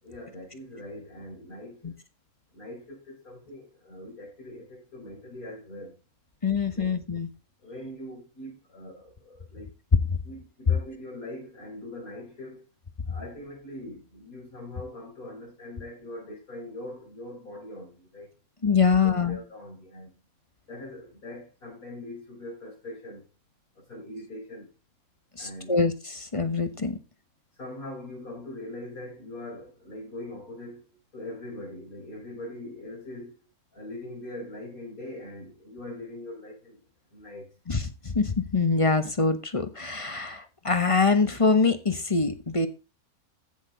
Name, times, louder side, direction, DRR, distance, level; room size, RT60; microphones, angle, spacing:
voice 1, 0.0-2.0 2.5-6.0 6.7-6.9 7.6-9.7 10.2-12.7 13.1-18.3 19.0-20.1 20.7-23.3 23.8-24.7 25.4-25.8 27.6-33.4 33.7-36.8 37.1-37.5, left 1 dB, 65° left, 5.8 m, -42 dB
voice 2, 6.4-7.3 10.1-10.2 18.6-19.4 25.4-27.0 37.7-42.7, left 4 dB, 25° left, 1.1 m, -24 dB
15.0 x 6.4 x 3.9 m
omnidirectional pair, 1.6 m